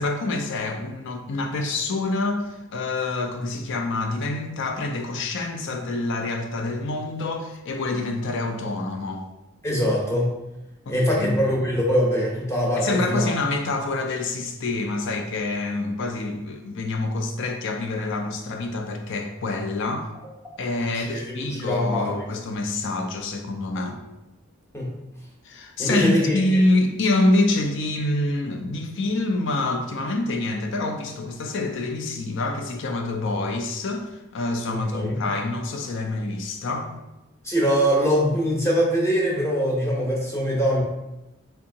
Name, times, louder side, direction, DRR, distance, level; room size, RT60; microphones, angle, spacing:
voice 1, 0.0-9.3 10.9-11.4 12.8-20.1 20.6-24.0 25.4-37.0, left 2 dB, 60° left, 0.4 m, -26 dB
voice 2, 9.6-10.3 10.9-13.3 21.0-22.2 24.7-24.9 25.8-26.4 34.7-35.2 37.4-40.8, equal, 15° left, 0.7 m, -23 dB
3.4 x 2.7 x 2.7 m
head